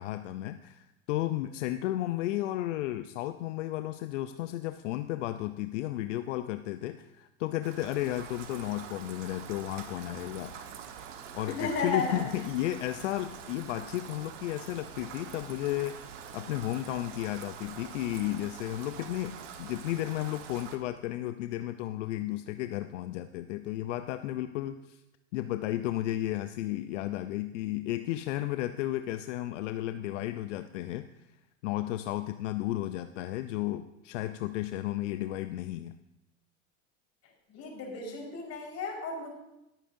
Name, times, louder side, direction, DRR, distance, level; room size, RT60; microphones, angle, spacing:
voice 1, 0.0-10.7 11.3-25.0 25.3-31.1 31.6-35.9, left 14 dB, 85° left, 10 dB, 0.6 m, -33 dB
Rain, 7.6-20.8, right 7 dB, 85° right, 1.3 m, -45 dB
voice 2, 11.6-12.2 37.5-39.3, left 4 dB, 45° left, -2 dB, 4.6 m, -33 dB
20.5 x 9.0 x 2.6 m, 0.91 s
supercardioid pair, 110°, 36 cm